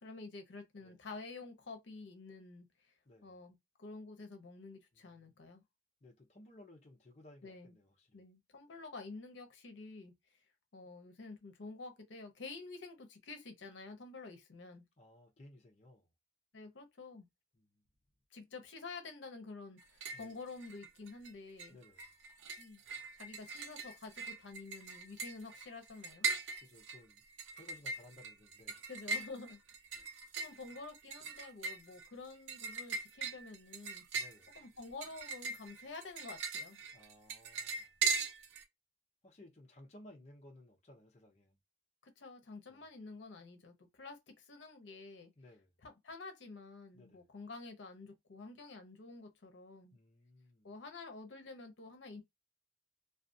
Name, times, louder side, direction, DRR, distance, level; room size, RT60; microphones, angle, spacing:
voice 1, 0.0-2.7 3.2-5.6 7.4-7.7 8.1-10.1 10.7-14.9 16.5-17.3 18.3-21.8 22.6-22.8 23.1-26.3 28.9-29.6 29.9-30.1 30.3-34.0 34.6-36.8 42.0-45.3 45.8-50.0 50.6-52.2, left 3 dB, 80° left, 0.7 m, -49 dB
voice 2, 3.1-3.4 4.9-5.4 6.0-8.2 15.0-16.1 17.5-17.8 20.1-20.4 21.7-22.1 26.6-27.2 27.5-28.9 34.1-34.5 36.9-38.0 39.2-41.6 42.7-42.9 45.4-45.7 46.9-47.3 49.9-50.7, left 1 dB, 40° left, 0.6 m, -59 dB
sound 1, 19.8-20.3 20.6-21.3 21.6-38.6, right 4 dB, 85° right, 0.4 m, -40 dB
2.4 x 2.3 x 2.5 m
head